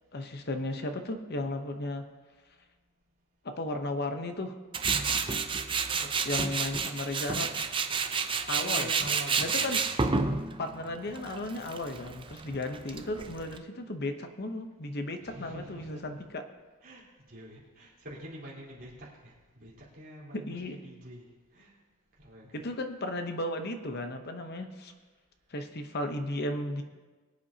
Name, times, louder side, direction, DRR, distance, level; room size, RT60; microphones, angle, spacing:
voice 1, 0.1-2.1 3.4-4.6 6.2-7.5 8.5-8.9 9.4-9.8 10.6-16.4 20.3-20.8 22.5-24.9 25.5-26.8, left 1 dB, 50° left, 7 dB, 0.9 m, -35 dB
Tools, 4.7-13.6, right 5 dB, 25° right, 0.6 m, -30 dB
voice 2, 5.8-6.3 8.6-9.8 11.0-11.1 15.2-16.2 16.8-21.2 21.5-21.7 22.2-22.7, right 1 dB, 45° right, -6 dB, 3.8 m, -46 dB
23.5 x 8.3 x 2.8 m, 1.3 s
head